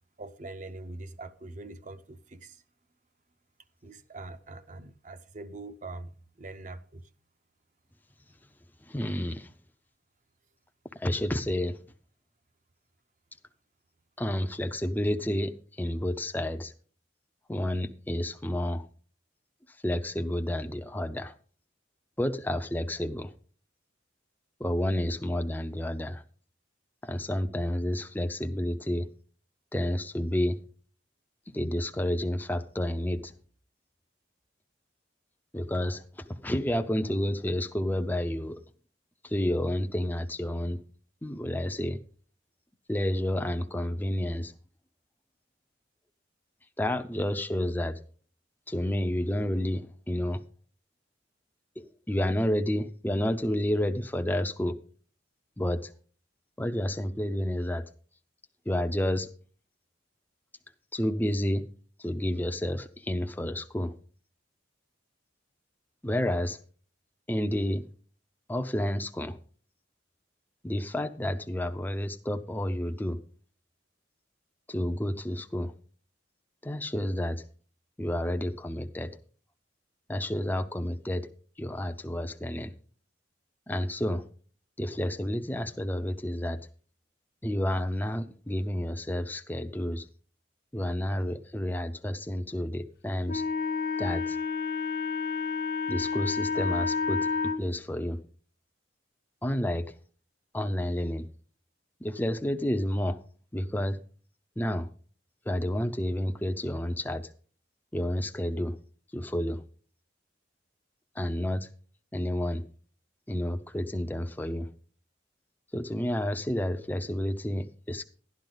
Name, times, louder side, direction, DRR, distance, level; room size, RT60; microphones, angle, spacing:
voice 1, 0.2-2.6 3.8-7.0, right 2 dB, 40° right, 0.7 m, -43 dB
voice 2, 8.9-9.5 10.9-11.8 14.2-16.7 17.5-18.9 19.8-21.3 22.2-23.3 24.6-26.2 27.0-29.1 29.7-30.6 31.5-33.3 35.5-38.6 39.2-40.8 41.2-42.0 42.9-44.5 46.8-48.0 48.7-50.4 51.8-54.8 55.6-55.9 56.6-57.8 58.7-59.3 60.9-61.7 62.0-63.9 66.0-66.6 67.3-67.8 68.5-69.4 70.6-73.2 74.7-75.7 76.6-77.4 78.0-79.1 80.1-81.3 81.6-82.7 83.7-84.2 84.8-86.6 87.4-90.1 90.7-93.4 94.0-94.4 95.9-97.3 97.6-98.2 99.4-99.8 100.5-101.3 102.0-103.2 103.5-104.0 104.6-104.9 105.5-107.3 107.9-108.8 109.1-109.6 111.2-111.7 112.1-112.6 113.3-114.7 115.7-118.0, left 1 dB, 10° left, 0.5 m, -30 dB
Wind instrument woodwind instrument, 93.3-97.6, left 5 dB, 50° left, 0.6 m, -30 dB
12.5 x 10.5 x 3.9 m
head